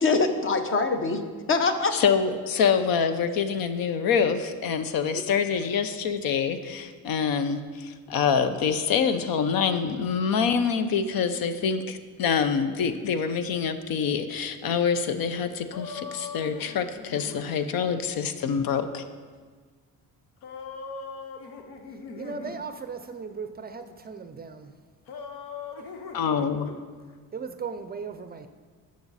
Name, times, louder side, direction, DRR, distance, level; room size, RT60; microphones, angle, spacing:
voice 1, 0.0-2.0 5.1-5.2, left 3 dB, 35° left, 8 dB, 0.8 m, -24 dB
voice 2, 1.9-19.0 26.1-26.7, left 6 dB, 70° left, 10 dB, 0.7 m, -26 dB
sound 1, 15.7-17.6 20.4-22.6 25.1-26.8, left 4 dB, 85° left, 1.0 m, -40 dB
voice 3, 22.2-24.7 27.3-28.5, right 5 dB, 25° right, 8 dB, 0.4 m, -37 dB
12.0 x 6.3 x 4.1 m, 1.5 s
cardioid pair, 120°, 37 cm